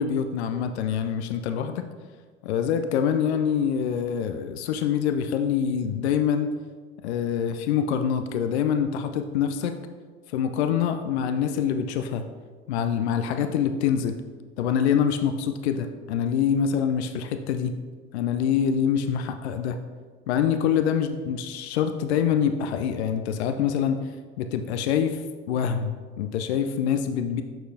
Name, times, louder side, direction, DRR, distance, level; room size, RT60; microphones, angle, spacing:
voice 1, 0.0-1.8 2.4-6.5 7.0-9.7 10.3-12.2 12.7-14.2 14.6-17.7 18.1-19.8 20.3-24.0 24.4-25.2 25.5-27.4, left 8 dB, 70° left, 8 dB, 0.5 m, -25 dB
6.4 x 5.9 x 2.7 m, 1.5 s
figure-of-eight pair, 60°, 34 cm